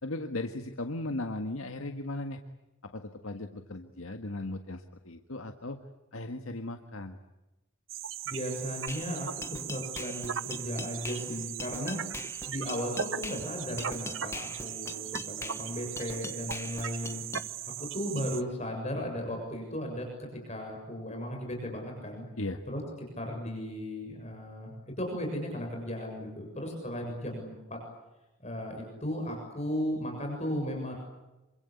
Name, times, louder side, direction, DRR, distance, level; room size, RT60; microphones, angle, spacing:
voice 1, 0.0-2.4 2.9-5.8 6.1-7.2 22.4-22.6, left 2 dB, 85° left, 6 dB, 1.7 m, -37 dB
sound 1, 7.9-18.4, right 9 dB, 70° right, 1.0 m, -38 dB
voice 2, 8.3-9.4 9.7-12.0 12.5-17.2 17.8-22.3 22.7-27.8 28.4-30.9, equal, 30° left, 2 dB, 7.0 m, -36 dB
sound 2, 8.9-17.5, left 3 dB, 15° left, 1.1 m, -42 dB
27.0 x 25.0 x 8.5 m, 1.0 s
head